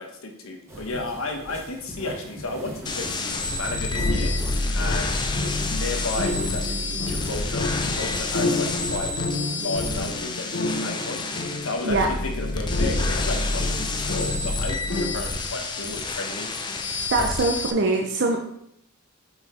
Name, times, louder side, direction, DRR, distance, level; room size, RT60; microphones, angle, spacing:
voice 1, 0.0-4.3 4.7-5.2 5.7-9.1 9.6-11.2 11.6-16.5 16.8-16.9 17.4-17.6, left 2 dB, 75° left, 3 dB, 1.1 m, -33 dB
sound 1, 0.7-7.9, right 1 dB, 10° right, 1.4 m, -41 dB
sound 2, 2.9-17.7, left 3 dB, 20° left, 0.4 m, -30 dB
sound 3, 3.7-15.1, left 2 dB, 60° left, 0.8 m, -28 dB
voice 2, 17.1-18.4, right 2 dB, 55° right, 2 dB, 0.6 m, -22 dB
5.6 x 4.6 x 4.3 m, 0.73 s
head